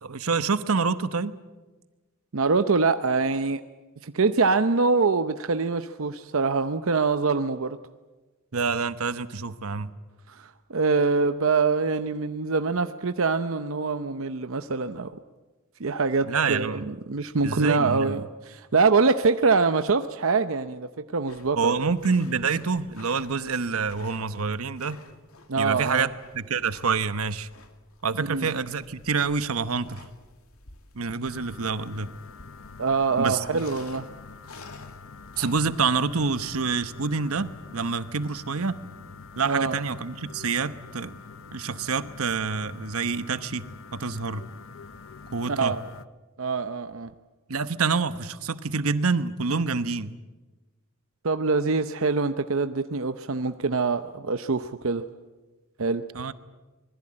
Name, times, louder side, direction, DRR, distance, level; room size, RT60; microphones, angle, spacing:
voice 1, 0.0-1.3 8.5-9.9 16.3-16.8 17.4-18.2 21.6-25.0 25.6-26.1 26.3-27.5 28.0-30.0 30.9-32.1 33.2-33.6 35.4-38.8 39.3-41.1 41.5-43.7 43.9-44.4 45.3-45.7 47.5-50.1 56.1-56.3, right 5 dB, 85° right, 12 dB, 1.1 m, -27 dB
voice 2, 2.3-3.6 4.0-7.8 10.3-15.2 15.8-21.9 25.5-26.1 28.1-28.7 32.8-34.1 39.4-39.8 45.5-45.8 46.4-47.1 51.2-55.1 55.8-56.0, right 4 dB, 70° right, 9 dB, 0.8 m, -24 dB
sound 1, 21.3-36.9, left 3 dB, 90° left, 2.4 m, -51 dB
sound 2, 31.3-46.0, left 4 dB, 65° left, 0.8 m, -45 dB
25.5 x 20.5 x 8.8 m, 1.2 s
head